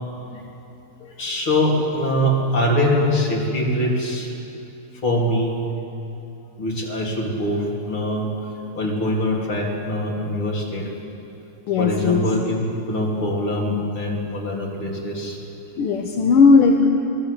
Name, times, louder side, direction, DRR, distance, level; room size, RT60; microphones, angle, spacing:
voice 1, 1.0-4.3 5.0-5.6 6.6-8.3 8.7-10.9 11.8-15.4, left 1 dB, 70° left, -2 dB, 4.3 m, -23 dB
voice 2, 11.7-12.3 15.8-16.9, left 4 dB, 90° left, 2 dB, 2.2 m, -16 dB
28.5 x 20.5 x 8.3 m, 2.9 s
omnidirectional pair, 2.4 m